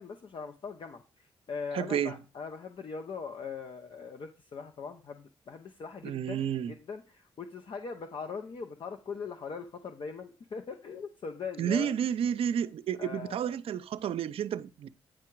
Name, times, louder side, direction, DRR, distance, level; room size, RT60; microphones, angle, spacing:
voice 1, 0.0-11.9 13.0-13.4, left 5 dB, 55° left, 0.8 m, -41 dB
voice 2, 1.7-2.2 6.0-6.7 11.6-14.9, right 9 dB, 70° right, 0.5 m, -31 dB
9.1 x 4.8 x 4.6 m
cardioid pair, 65°, 10 cm